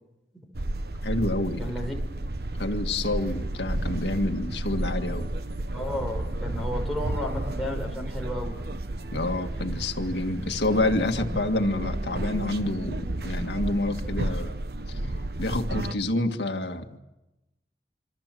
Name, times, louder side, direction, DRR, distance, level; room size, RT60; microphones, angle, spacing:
sound 1, 0.5-15.9, right 1 dB, 65° right, 1.1 m, -32 dB
voice 1, 1.0-1.7 2.6-5.3 9.1-14.5 14.9-15.0 15.4-17.0, left 2 dB, 85° left, 4 dB, 1.9 m, -28 dB
voice 2, 1.6-2.0 5.7-8.6, left 1 dB, ahead, -1 dB, 5.4 m, -33 dB
27.0 x 26.0 x 7.7 m, 0.99 s
head